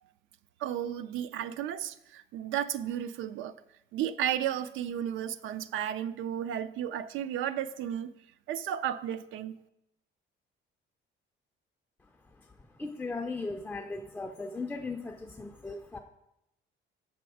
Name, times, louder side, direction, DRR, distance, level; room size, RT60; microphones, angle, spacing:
voice 1, 0.6-3.6 3.9-8.1 8.5-9.6, right 10 dB, 75° right, 0.4 m, -33 dB
voice 2, 12.0-16.0, left 3 dB, 5° left, 0.3 m, -38 dB
7.0 x 6.0 x 4.7 m
cardioid pair, 165°, 21 cm